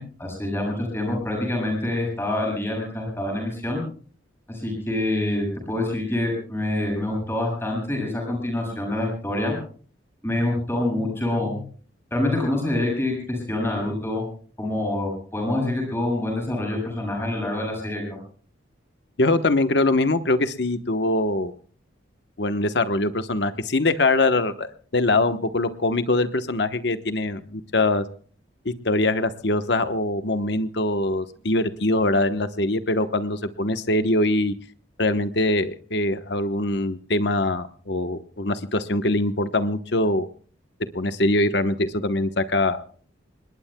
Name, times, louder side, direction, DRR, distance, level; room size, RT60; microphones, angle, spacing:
voice 1, 0.0-3.8 4.5-9.6 10.2-11.6 12.1-14.2 14.6-18.2, left 1 dB, 15° left, 1 dB, 7.4 m, -26 dB
voice 2, 19.2-21.5 22.4-28.0 28.6-34.6 35.0-40.3 40.9-42.8, left 2 dB, 65° left, 10 dB, 1.1 m, -23 dB
26.0 x 21.0 x 2.3 m, 0.44 s
head